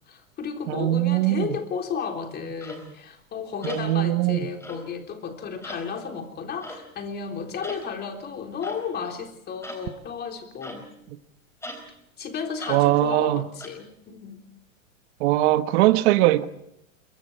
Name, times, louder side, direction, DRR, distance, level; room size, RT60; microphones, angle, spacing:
voice 1, 0.1-10.8 12.2-14.4, left 6 dB, 25° left, 3.7 m, -33 dB
voice 2, 0.7-1.5 3.6-4.4 12.7-13.4 15.2-16.5, right 16 dB, 55° right, 1.4 m, -21 dB
sound 1, 2.6-2.9 3.6-3.9 4.6-4.9 5.6-5.9 6.6-6.9 7.6-7.9 8.6-8.8 9.6-9.9 10.6-11.0 11.6-11.9 12.6-12.8 13.6-13.7, left 1 dB, 5° left, 4.1 m, -39 dB
26.5 x 23.5 x 4.5 m
supercardioid pair, 135°, 40 cm